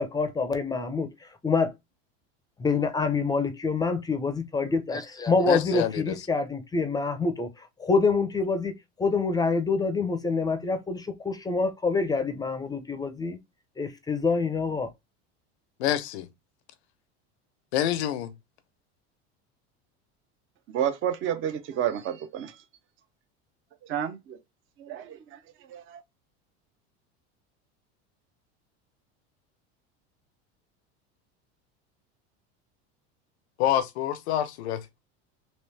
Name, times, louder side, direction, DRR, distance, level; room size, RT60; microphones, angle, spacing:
voice 1, 0.0-1.7 2.6-8.7 9.0-13.4 13.8-14.9, left 4 dB, 10° left, 0.6 m, -26 dB
voice 2, 5.4-6.3 15.8-16.3 17.7-18.3 33.6-35.0, left 11 dB, 90° left, 0.7 m, -27 dB
voice 3, 20.7-22.6 23.9-24.4 24.8-25.4 25.7-26.0, right 10 dB, 40° right, 0.7 m, -30 dB
3.2 x 3.1 x 3.2 m
supercardioid pair, 130°, 32 cm